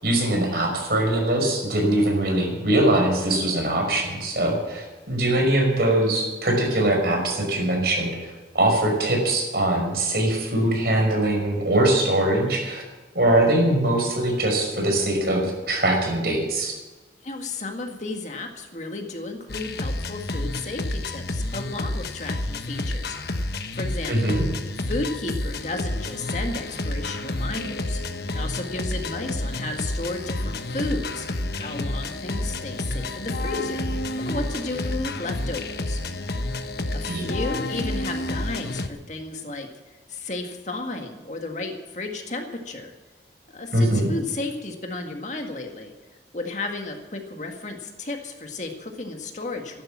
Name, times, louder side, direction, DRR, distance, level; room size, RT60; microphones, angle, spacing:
voice 1, 0.0-12.8 13.1-16.8 24.1-24.4 37.1-37.2 43.7-44.1, right 1 dB, 60° right, 1 dB, 5.7 m, -22 dB
voice 2, 17.2-24.3 24.8-31.3 31.5-33.9 34.2-36.0 36.9-39.7 40.1-42.9 43.5-45.9 46.3-49.8, left 2 dB, 40° left, 3 dB, 1.9 m, -33 dB
sound 1, 19.5-38.9, left 2 dB, 65° left, 1.2 m, -29 dB
15.0 x 12.0 x 7.5 m, 1.2 s
head